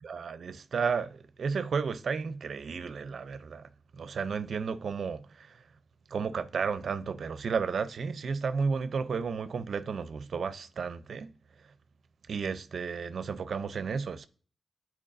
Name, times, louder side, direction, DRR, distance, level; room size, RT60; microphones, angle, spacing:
voice 1, 0.0-5.6 6.1-11.3 12.3-14.3, right 5 dB, 70° right, 0.6 m, -33 dB
12.5 x 4.5 x 2.6 m
wide cardioid pair, 120°, 0 cm